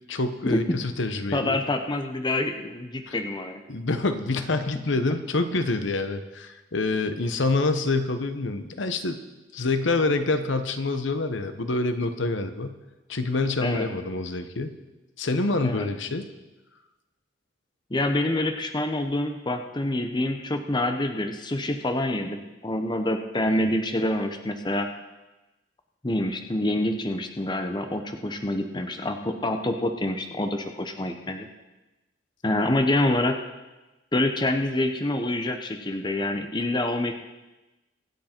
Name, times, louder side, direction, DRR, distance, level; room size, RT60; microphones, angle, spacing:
voice 1, 0.1-1.6 3.1-3.2 3.7-9.2 9.5-12.8 13.1-14.7 15.2-16.3 23.5-23.6, left 3 dB, 70° left, 9 dB, 1.0 m, -26 dB
voice 2, 1.3-3.6 13.6-13.9 15.6-15.9 17.9-24.9 26.0-31.5 32.4-33.4 34.1-37.1, left 1 dB, 20° left, 6 dB, 0.8 m, -26 dB
24.5 x 8.2 x 4.5 m, 1.1 s
head